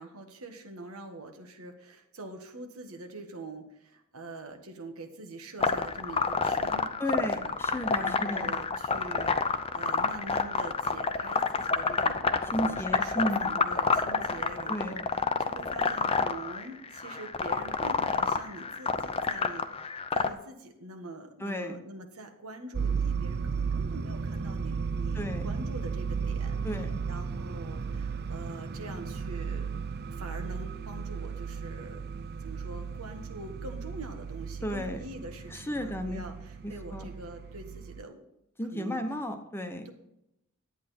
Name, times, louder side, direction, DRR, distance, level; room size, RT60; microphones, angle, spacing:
voice 1, 0.0-7.6 8.0-12.4 12.6-29.7 30.1-32.0 32.4-38.3 38.7-39.0 39.8-39.9, right 2 dB, 90° right, 5 dB, 1.6 m, -44 dB
sound 1, 5.6-20.3, left 4 dB, 25° left, 0.6 m, -28 dB
voice 2, 7.0-8.5 12.5-13.5 14.3-14.9 21.4-21.8 25.1-25.5 26.6-27.0 34.6-35.0 35.5-36.2 36.6-37.0 38.6-39.9, equal, 10° left, 6 dB, 1.0 m, -33 dB
sound 2, 22.7-38.0, right 5 dB, 50° right, 0.5 m, -35 dB
11.0 x 8.9 x 4.4 m, 0.85 s
head